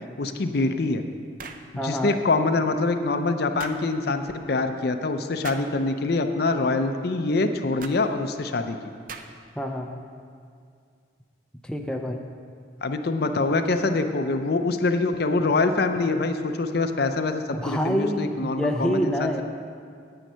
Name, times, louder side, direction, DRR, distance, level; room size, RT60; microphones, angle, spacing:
voice 1, 0.2-1.0 1.8-4.2 4.5-8.8 12.8-19.4, left 3 dB, 55° left, 7 dB, 0.5 m, -24 dB
sound 1, 1.4-1.7 3.6-3.8 5.4-5.7 7.8-8.0 9.1-9.5, right 5 dB, 45° right, 0.5 m, -39 dB
voice 2, 1.8-2.2 9.6-9.9 11.6-12.3 17.5-19.4, equal, 5° left, 2 dB, 0.5 m, -27 dB
9.0 x 8.8 x 5.5 m, 2.2 s
head